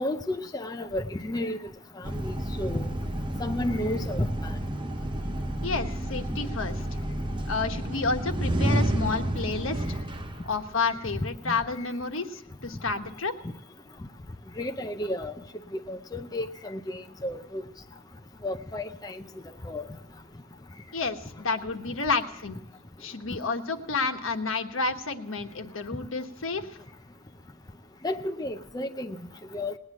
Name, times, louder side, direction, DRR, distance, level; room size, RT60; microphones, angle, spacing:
voice 1, 0.0-1.6 2.1-2.3 2.6-2.9 3.4-4.5 14.6-15.3 15.9-17.6 18.4-19.2 19.6-19.9 28.0-29.2 29.5-29.7, left 1 dB, 20° left, 6 dB, 0.5 m, -32 dB
sound 1, 2.0-11.1, right 1 dB, 25° right, 0.8 m, -30 dB
voice 2, 5.6-6.8 7.5-10.0 10.4-13.4 20.9-22.6 23.0-26.8, left 4 dB, 80° left, 6 dB, 1.3 m, -30 dB
19.0 x 9.6 x 7.2 m, 0.72 s
head